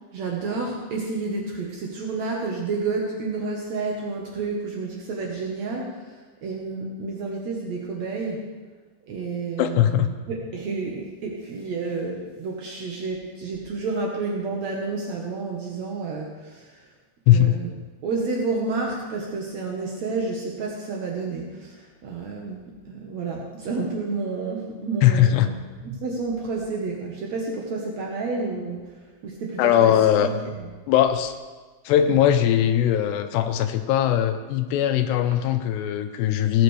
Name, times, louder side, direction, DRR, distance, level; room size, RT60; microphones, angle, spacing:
voice 1, 0.1-6.1 6.4-8.4 9.1-16.8 17.3-17.7 18.0-25.5 25.8-28.9 29.2-30.4 30.6-30.7, right 3 dB, 85° right, -1 dB, 1.5 m, -30 dB
voice 2, 9.6-10.1 17.3-17.6 25.0-25.5 29.6-30.3 30.9-31.3 31.9-36.6, left 11 dB, 80° left, 7 dB, 2.6 m, -20 dB
18.5 x 10.0 x 3.3 m, 1.4 s
omnidirectional pair, 5.3 m